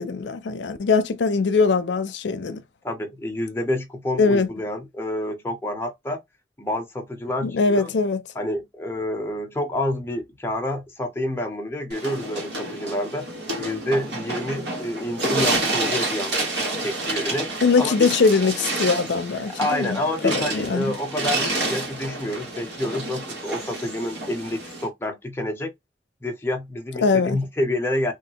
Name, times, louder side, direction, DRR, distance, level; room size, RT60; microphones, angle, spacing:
voice 1, 0.0-2.6 4.2-4.5 7.4-8.2 17.6-21.0 27.0-27.4, left 4 dB, 85° left, 0.5 m, -21 dB
voice 2, 2.8-6.2 6.6-7.9 8.3-13.3 13.6-16.4 16.8-17.5 17.8-18.1 19.3-25.7 26.2-28.1, left 1 dB, 15° left, 0.6 m, -28 dB
sound 1, 11.9-24.9, right 2 dB, 75° right, 1.2 m, -29 dB
3.2 x 2.3 x 2.9 m
head